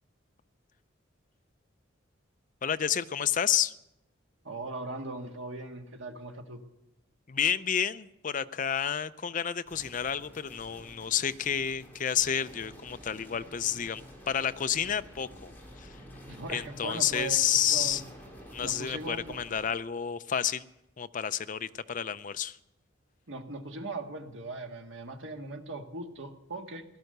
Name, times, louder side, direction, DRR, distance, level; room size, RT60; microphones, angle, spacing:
voice 1, 2.6-3.7 7.3-16.0 16.5-18.0 18.5-20.7 21.0-22.6, left 9 dB, 40° left, 12 dB, 0.5 m, -30 dB
voice 2, 4.4-6.6 16.3-18.0 18.6-19.4 23.3-26.8, right 2 dB, 75° right, 4 dB, 1.7 m, -39 dB
sound 1, 9.6-19.7, equal, 10° left, 3.4 m, -49 dB
17.0 x 12.0 x 6.7 m, 0.89 s
head